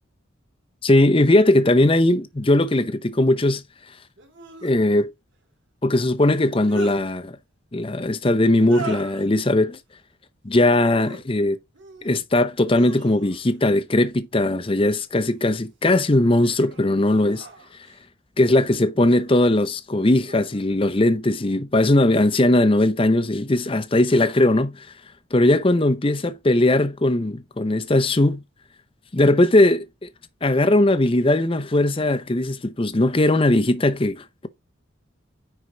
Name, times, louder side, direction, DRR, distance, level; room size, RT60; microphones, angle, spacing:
voice 1, 0.8-3.6 4.6-5.1 5.8-7.4 7.7-9.8 10.4-11.6 12.0-17.5 18.4-24.9 25.3-28.4 29.1-30.1 30.4-34.5, left 1 dB, 25° left, 0.6 m, -19 dB
sound 1, 1.8-1.9 4.2-4.8 6.3-7.0 8.5-9.3 10.8-11.2 11.7-12.3 12.7-13.6 14.8-15.4 16.0-18.0 19.1-19.6 20.2-20.7, right 3 dB, 60° right, 2.7 m, -40 dB
9.6 x 4.5 x 3.8 m
head